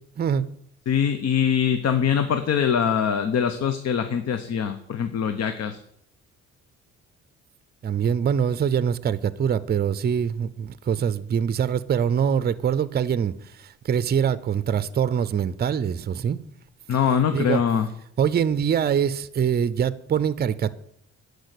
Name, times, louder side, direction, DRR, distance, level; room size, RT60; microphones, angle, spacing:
voice 1, 0.9-5.8 16.9-17.9, left 7 dB, 55° left, 0.9 m, -23 dB
voice 2, 7.8-16.4 17.3-17.6 18.2-20.7, right 8 dB, 35° right, 0.5 m, -24 dB
10.5 x 4.8 x 8.2 m
cardioid pair, 90°, 30 cm